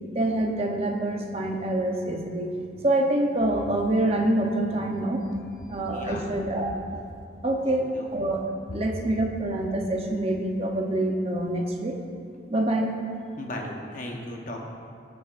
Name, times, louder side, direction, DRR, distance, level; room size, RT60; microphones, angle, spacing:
voice 1, 0.1-2.5 2.8-5.2 5.7-7.0 7.4-7.9 8.1-8.4 8.7-12.0 12.5-12.9, right 1 dB, 30° right, 2 dB, 0.8 m, -26 dB
voice 2, 5.6-6.4 7.6-8.1 13.4-14.6, left 1 dB, 45° left, 0 dB, 1.1 m, -37 dB
15.0 x 8.5 x 2.5 m, 2.4 s
head